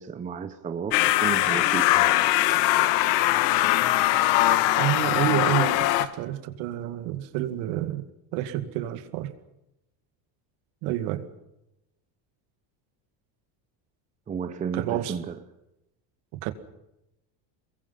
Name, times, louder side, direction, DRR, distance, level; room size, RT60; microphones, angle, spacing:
voice 1, 0.0-2.1 14.3-15.4, right 6 dB, 15° right, 0.8 m, -33 dB
sound 1, 0.9-6.1, left 15 dB, 75° left, 1.7 m, -21 dB
voice 2, 4.7-8.0 8.3-9.3 10.8-11.3 14.7-15.2 16.3-16.5, right 14 dB, 60° right, 2.2 m, -29 dB
28.5 x 22.0 x 5.8 m
cardioid pair, 180°, 50 cm